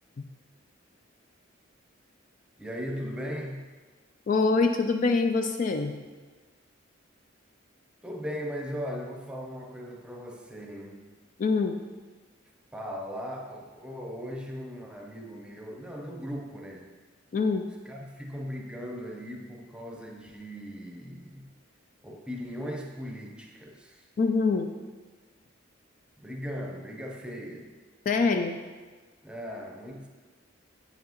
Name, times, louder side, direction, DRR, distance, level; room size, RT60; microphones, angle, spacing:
voice 1, 2.6-3.7 8.0-11.0 12.7-16.9 17.8-21.5 22.0-24.0 26.2-27.7 29.2-30.1, equal, 5° right, 0 dB, 0.7 m, -38 dB
voice 2, 4.3-5.9 11.4-11.8 17.3-17.7 24.2-24.7 28.1-28.6, left 4 dB, 40° left, 6 dB, 0.3 m, -24 dB
8.5 x 5.7 x 3.0 m, 1.4 s
head